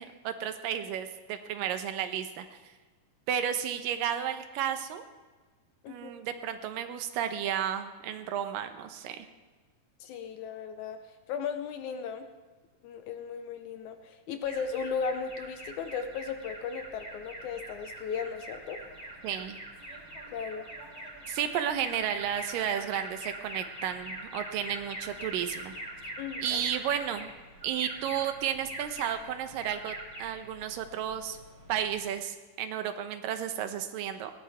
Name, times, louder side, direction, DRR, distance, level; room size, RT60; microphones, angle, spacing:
voice 1, 0.0-2.5 3.3-5.0 5.9-9.3 19.2-19.6 21.3-25.7 26.4-27.3 27.6-31.4 31.7-34.3, right 9 dB, 90° right, 8 dB, 2.6 m, -33 dB
voice 2, 10.0-12.3 12.8-18.8 20.3-20.7 26.2-26.6, left 6 dB, 75° left, 7 dB, 2.0 m, -36 dB
Alarm, 14.4-32.1, right 1 dB, 10° left, 3.8 m, -43 dB
20.0 x 17.0 x 3.5 m, 1.3 s
omnidirectional pair, 3.8 m